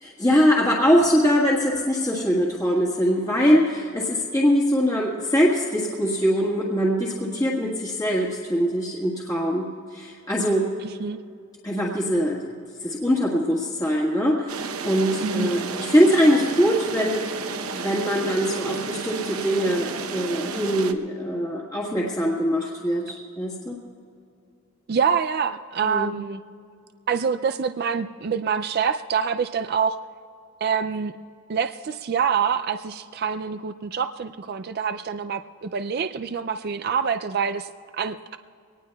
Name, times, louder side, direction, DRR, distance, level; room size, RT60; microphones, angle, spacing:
voice 1, 0.0-10.7 11.6-12.5 12.8-17.4 17.7-23.8 25.8-26.1, equal, 15° left, -5 dB, 1.5 m, -22 dB
voice 2, 10.8-11.2 15.2-15.5 24.9-26.4 27.1-30.0 30.6-31.1 31.5-38.2, right 6 dB, 45° right, 9 dB, 0.3 m, -26 dB
sound 1, 14.5-20.9, right 4 dB, 75° right, 0.8 m, -32 dB
23.5 x 19.0 x 2.3 m, 2.4 s
head